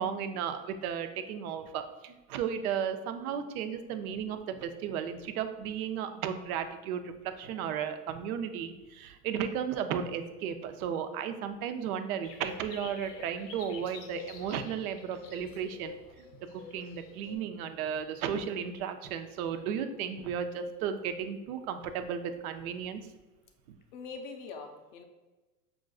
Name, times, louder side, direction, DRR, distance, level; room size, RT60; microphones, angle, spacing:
voice 1, 0.0-16.3 16.5-23.0, right 8 dB, 60° right, 8 dB, 0.6 m, -34 dB
sound 1, 12.2-17.4, left 4 dB, 85° left, 0.9 m, -47 dB
voice 2, 23.9-25.0, left 4 dB, 35° left, 5 dB, 0.4 m, -43 dB
6.0 x 2.5 x 2.3 m, 1.1 s
supercardioid pair, 135°, 48 cm